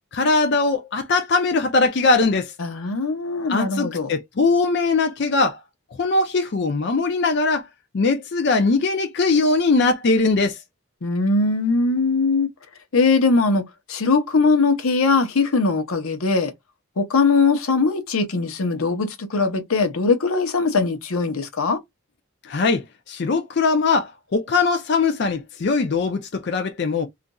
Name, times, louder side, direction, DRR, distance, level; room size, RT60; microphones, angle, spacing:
voice 1, 0.1-2.5 3.5-5.6 6.0-7.6 7.9-10.6 22.4-27.1, left 3 dB, 55° left, 0.4 m, -20 dB
voice 2, 2.6-4.1 11.0-12.5 12.9-13.6 13.9-16.5 17.0-21.8, left 4 dB, 85° left, 0.7 m, -20 dB
3.9 x 2.5 x 2.2 m
head